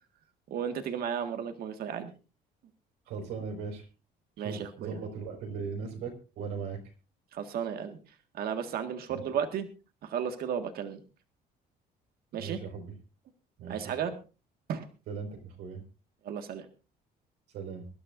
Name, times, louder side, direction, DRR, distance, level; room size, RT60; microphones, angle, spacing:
voice 1, 0.5-2.1 4.4-5.0 7.3-8.0 8.3-9.7 10.0-11.0 12.3-12.6 13.7-14.1 14.7-14.8 16.2-16.7, right 8 dB, 65° right, 7 dB, 1.7 m, -34 dB
voice 2, 3.1-3.8 4.4-6.8 9.1-9.2 12.3-12.9 13.6-13.8 15.1-15.8 17.5-17.8, right 5 dB, 85° right, 3 dB, 5.0 m, -38 dB
24.5 x 12.0 x 2.6 m, 0.32 s
cardioid pair, 110°, 17 cm